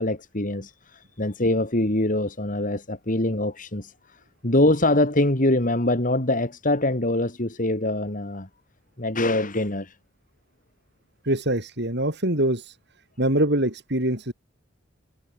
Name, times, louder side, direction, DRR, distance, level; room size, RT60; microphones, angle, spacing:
voice 1, 0.0-8.5 9.0-9.9, left 1 dB, 40° left, 2.9 m, -24 dB
voice 2, 11.2-12.8 13.2-14.3, right 1 dB, 60° right, 7.3 m, -24 dB
head